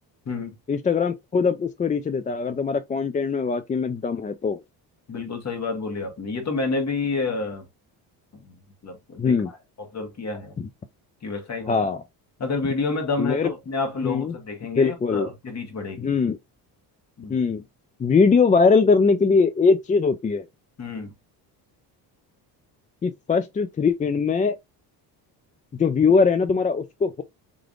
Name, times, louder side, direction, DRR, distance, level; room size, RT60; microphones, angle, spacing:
voice 1, 0.7-4.6 9.2-9.5 11.7-12.0 13.2-13.5 14.0-14.3 14.8-15.3 16.0-16.4 17.3-17.6 18.0-20.5 23.0-24.6 25.7-27.2, left 5 dB, 20° left, 0.3 m, -21 dB
voice 2, 5.1-7.7 8.3-8.6 8.8-10.6 11.2-11.8 12.4-16.1 17.2-17.4 20.8-21.1, left 3 dB, 40° left, 1.7 m, -29 dB
3.7 x 3.4 x 2.5 m
cardioid pair, 90°, 42 cm